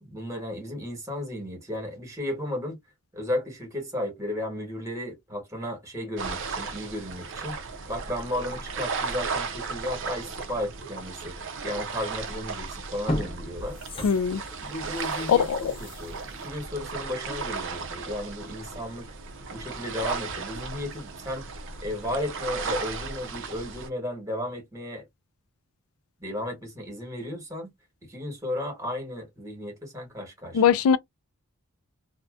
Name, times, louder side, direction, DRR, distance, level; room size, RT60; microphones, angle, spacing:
voice 1, 0.0-2.8 3.1-7.6 7.9-11.4 11.6-13.8 14.6-19.1 19.5-21.5 21.8-25.0 26.2-27.7 28.1-30.6, left 1 dB, 15° right, 1.1 m, -34 dB
sound 1, 6.2-23.9, right 4 dB, 55° right, 0.5 m, -35 dB
sound 2, 12.3-12.4 12.9-17.6 18.0-18.1, left 1 dB, 25° left, 0.6 m, -36 dB
voice 2, 14.0-14.4 15.3-15.7 30.5-31.0, left 7 dB, 70° left, 0.3 m, -21 dB
2.6 x 2.1 x 2.3 m
head